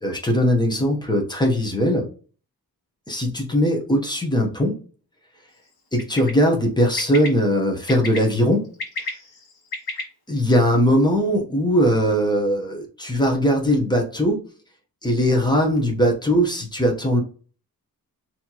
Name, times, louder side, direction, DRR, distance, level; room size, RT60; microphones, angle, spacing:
voice 1, 0.0-2.1 3.1-4.8 5.9-8.7 10.3-14.4 15.0-17.2, equal, 10° left, 1 dB, 0.9 m, -20 dB
Bird, 6.0-6.3 7.0-7.3 7.9-8.2 8.6-10.0, left 3 dB, 80° left, 1.4 m, -30 dB
4.2 x 2.9 x 2.9 m, 0.39 s
wide cardioid pair, 155°, 37 cm